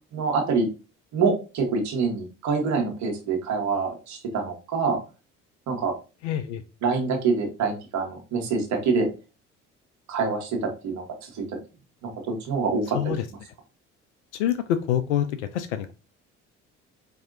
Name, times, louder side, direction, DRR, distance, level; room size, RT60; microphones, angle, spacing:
voice 1, 0.1-0.7 1.1-5.0 5.7-5.9 6.8-9.1 10.1-11.4 12.0-13.4, right 4 dB, 50° right, 2 dB, 1.2 m, -26 dB
voice 2, 6.2-6.6 12.9-13.2 14.3-15.3 15.5-15.9, left 10 dB, 65° left, 10 dB, 0.5 m, -26 dB
4.6 x 2.7 x 2.6 m, 0.31 s
figure-of-eight pair, 55°, 37 cm